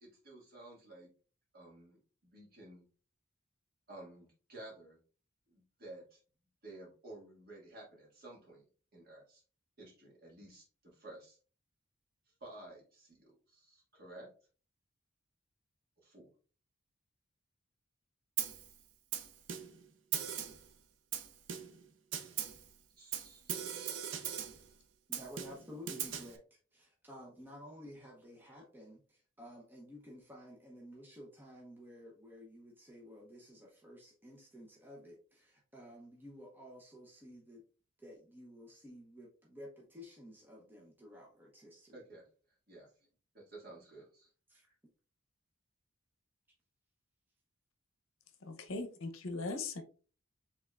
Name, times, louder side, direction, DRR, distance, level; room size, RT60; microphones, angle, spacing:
voice 1, 0.0-1.1 1.5-2.0 2.2-2.9 3.9-5.0 5.5-6.2 6.6-8.7 8.9-9.4 9.8-11.4 12.4-14.3 16.0-16.3 22.9-23.6 41.9-42.2 42.7-42.9 43.3-44.3, right 2 dB, 45° right, -3 dB, 1.9 m, -53 dB
Snare drum, 18.4-18.7 19.1-19.8 20.1-20.7 21.1-21.8 22.1-22.6 23.1-24.6 25.1-26.4, right 9 dB, 65° right, 0.6 m, -39 dB
voice 2, 25.1-26.4 26.7-37.6 38.0-42.0 44.5-44.7, equal, 10° right, -2 dB, 0.7 m, -53 dB
voice 3, 48.4-49.8, left 3 dB, 80° left, 7 dB, 0.7 m, -39 dB
5.3 x 3.5 x 2.4 m, 0.38 s
head